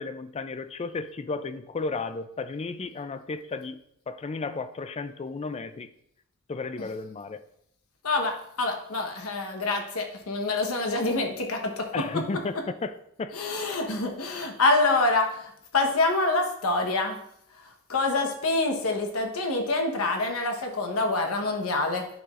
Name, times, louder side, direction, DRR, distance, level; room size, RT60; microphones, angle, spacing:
voice 1, 0.0-3.8 4.1-5.9 6.5-7.4 11.9-13.3, left 3 dB, 30° left, 11 dB, 0.4 m, -33 dB
voice 2, 8.0-12.2 13.3-17.2 17.9-22.1, left 2 dB, 85° left, 3 dB, 1.1 m, -26 dB
9.4 x 5.8 x 2.5 m, 0.72 s
head